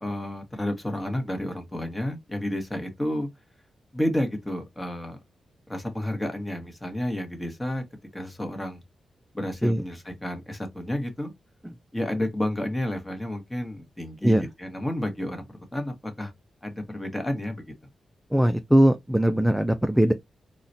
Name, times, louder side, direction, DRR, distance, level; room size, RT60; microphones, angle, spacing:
voice 1, 0.0-3.3 3.9-5.2 5.7-7.8 8.1-8.8 9.3-11.3 11.9-15.4 15.7-16.3 16.6-17.6, left 1 dB, 10° left, 1.0 m, -31 dB
voice 2, 18.3-20.1, right 1 dB, 5° right, 0.3 m, -20 dB
3.9 x 2.1 x 2.5 m
cardioid pair, 95°, 0 cm